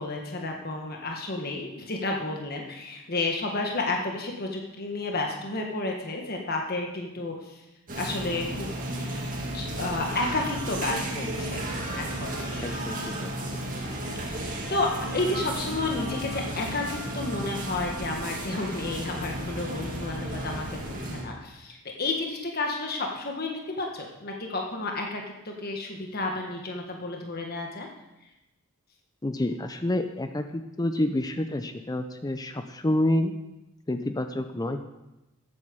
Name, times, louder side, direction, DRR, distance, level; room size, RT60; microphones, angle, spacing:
voice 1, 0.0-7.6 8.0-8.7 9.0-9.3 9.5-12.8 14.3-27.9, left 2 dB, 45° left, 1 dB, 1.3 m, -31 dB
sound 1, 7.9-21.2, right 1 dB, 40° right, 2.1 m, -33 dB
voice 2, 12.6-13.3 29.2-33.4 33.9-34.8, left 1 dB, 15° left, 8 dB, 0.5 m, -28 dB
13.5 x 8.6 x 5.2 m, 0.98 s
head